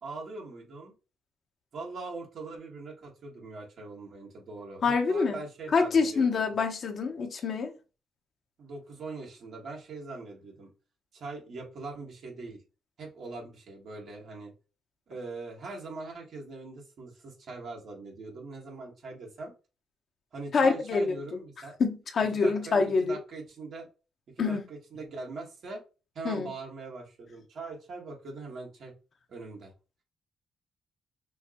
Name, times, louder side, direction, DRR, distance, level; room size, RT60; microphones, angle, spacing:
voice 1, 0.0-0.9 1.7-6.6 8.6-10.7 11.1-12.6 13.0-14.5 15.1-19.5 20.3-21.8 22.4-23.9 24.5-25.8 26.1-28.9 29.3-29.7, right 3 dB, 65° right, 1.6 m, -41 dB
voice 2, 4.8-5.4 5.7-7.7 20.5-21.1 21.8-23.2 24.4-24.6 26.2-26.5, left 4 dB, 60° left, 0.8 m, -26 dB
5.5 x 2.0 x 2.9 m
supercardioid pair, 55°, 0 cm